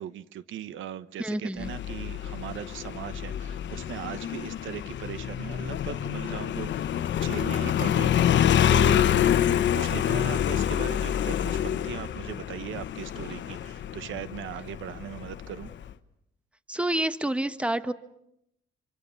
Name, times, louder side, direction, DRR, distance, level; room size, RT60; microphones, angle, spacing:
voice 1, 0.0-9.1 9.3-15.7, right 11 dB, 80° right, 15 dB, 1.0 m, -39 dB
voice 2, 1.2-1.7 16.7-17.9, right 1 dB, 5° right, 12 dB, 1.2 m, -28 dB
Motorcycle, 1.6-15.9, left 10 dB, 65° left, 1.2 m, -27 dB
25.5 x 25.5 x 7.1 m, 0.80 s
cardioid pair, 90°, 20 cm